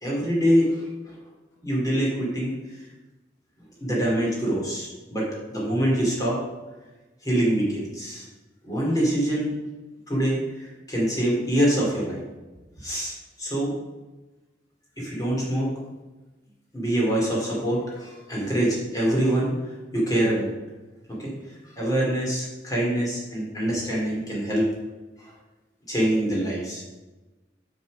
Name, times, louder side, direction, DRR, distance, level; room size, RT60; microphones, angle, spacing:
voice 1, 0.0-1.1 1.6-2.9 3.8-6.4 7.2-8.2 8.6-9.5 10.1-12.2 12.8-13.7 15.0-15.7 16.7-19.5 19.9-20.5 21.1-24.7 25.2-25.3 25.9-26.8, right 1 dB, 20° left, -4 dB, 2.7 m, -25 dB
7.3 x 6.2 x 5.4 m, 1.2 s
head